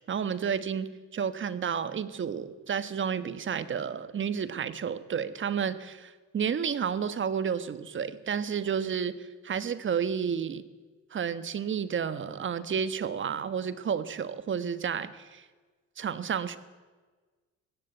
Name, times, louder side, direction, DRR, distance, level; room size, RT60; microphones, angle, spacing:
voice 1, 0.1-10.6 11.1-15.4 16.0-16.6, right 7 dB, 40° right, 14 dB, 1.3 m, -31 dB
20.0 x 16.0 x 9.2 m, 1.3 s
cardioid pair, 125°, 30 cm